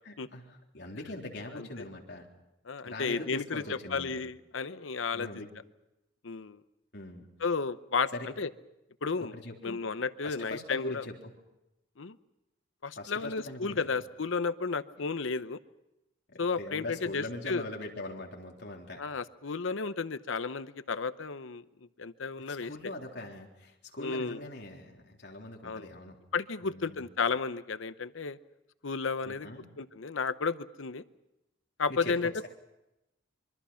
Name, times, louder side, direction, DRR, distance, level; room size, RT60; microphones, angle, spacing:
voice 1, 0.1-2.3 2.8-4.2 5.1-5.5 6.9-7.3 8.1-8.3 9.2-9.8 10.2-11.3 13.0-13.8 16.3-19.0 22.5-26.2 26.6-27.1 29.2-29.7 31.9-32.5, left 2 dB, 60° left, 0 dB, 3.8 m, -42 dB
voice 2, 2.7-5.3 6.2-6.6 7.4-8.1 8.4-8.5 9.0-9.3 9.6-11.1 12.0-12.2 12.8-15.6 16.4-17.6 19.0-21.6 22.0-22.9 24.0-24.4 25.6-25.9 26.3-28.4 28.8-29.5 29.8-31.0 31.8-32.5, left 4 dB, 85° left, 13 dB, 0.8 m, -33 dB
25.5 x 23.5 x 5.7 m, 0.92 s
head